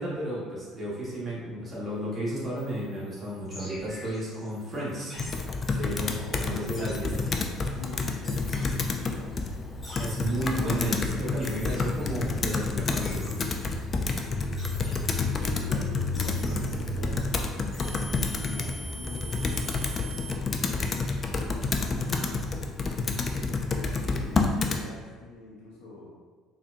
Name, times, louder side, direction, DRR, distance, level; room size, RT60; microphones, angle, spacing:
voice 1, 0.0-5.3 5.7-6.1 6.4-7.1 10.0-13.3, right 1 dB, 25° right, -8 dB, 1.4 m, -33 dB
sound 1, 2.6-20.3, equal, 20° left, 1.3 m, -47 dB
Computer keyboard, 5.2-24.8, left 3 dB, 40° left, 0.4 m, -29 dB
voice 2, 6.1-9.5 14.2-19.4 20.2-22.6 23.1-26.1, left 2 dB, 75° left, -5 dB, 0.7 m, -45 dB
4.1 x 2.5 x 2.5 m, 1.4 s
hypercardioid pair, 70°, 0 cm